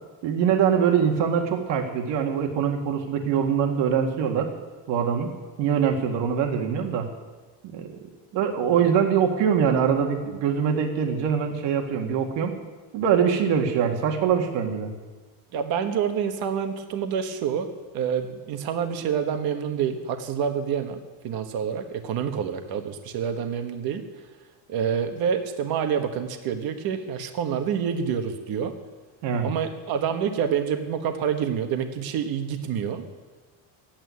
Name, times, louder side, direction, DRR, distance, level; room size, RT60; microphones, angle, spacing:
voice 1, 0.2-4.5 4.9-5.3 5.6-7.1 7.7-7.9 8.3-12.5 12.9-14.9 29.2-29.5, right 7 dB, 70° right, 3 dB, 2.0 m, -23 dB
voice 2, 15.5-17.7 17.9-24.0 24.7-28.7 29.4-33.0, right 7 dB, 55° right, 6 dB, 1.4 m, -27 dB
13.5 x 9.1 x 9.5 m, 1.3 s
cardioid pair, 150°, 44 cm